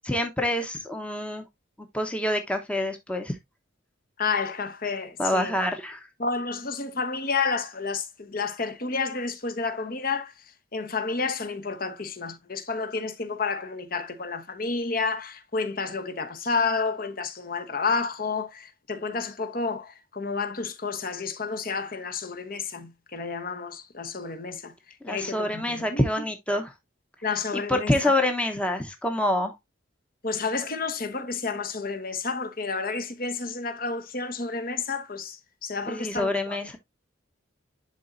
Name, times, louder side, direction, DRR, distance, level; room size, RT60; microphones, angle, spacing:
voice 1, 0.0-1.4 1.9-3.4 5.2-6.1 25.0-26.7 27.7-29.6 35.9-36.8, left 1 dB, 5° left, 0.8 m, -26 dB
voice 2, 4.2-5.6 6.2-10.3 10.7-24.7 25.1-26.1 27.2-28.0 30.2-35.4 35.6-36.6, left 4 dB, 45° left, 1.0 m, -30 dB
11.0 x 4.0 x 2.5 m
head